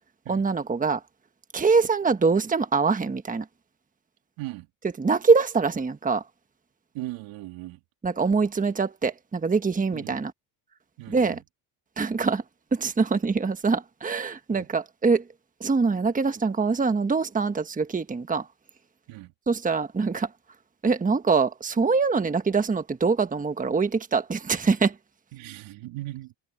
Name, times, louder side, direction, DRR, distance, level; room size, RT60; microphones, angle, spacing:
voice 1, 0.3-1.0 1.5-3.4 5.0-6.2 8.0-10.3 11.1-11.4 12.0-12.4 12.7-15.2 15.6-18.5 19.5-20.3 20.8-24.9, right 4 dB, 15° right, 1.3 m, -24 dB
voice 2, 4.4-4.7 6.9-7.8 9.9-10.2 11.0-11.4 14.5-14.7 19.1-19.3 25.3-26.3, right 18 dB, 85° right, 3.2 m, -38 dB
cardioid pair, 110°, 46 cm